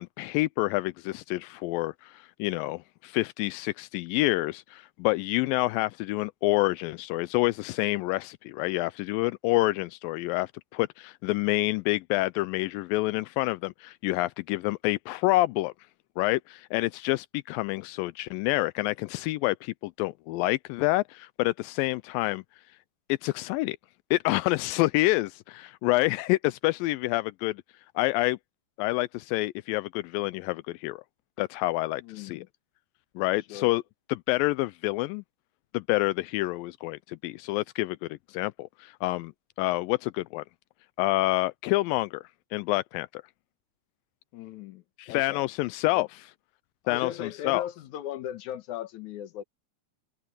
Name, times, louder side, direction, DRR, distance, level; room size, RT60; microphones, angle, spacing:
voice 1, 0.0-15.7 16.2-22.4 23.1-23.8 24.1-27.6 28.0-28.4 28.8-31.0 31.4-32.4 33.2-33.8 34.1-35.2 35.7-39.3 39.6-40.4 41.0-42.2 42.5-43.2 45.0-46.3 46.9-47.6, left 20 dB, 85° left, 2.3 m, -28 dB
voice 2, 32.0-32.5 33.5-33.8 44.3-45.4 45.9-46.1 46.8-49.4, left 11 dB, 65° left, 2.5 m, -38 dB
omnidirectional pair, 4.0 m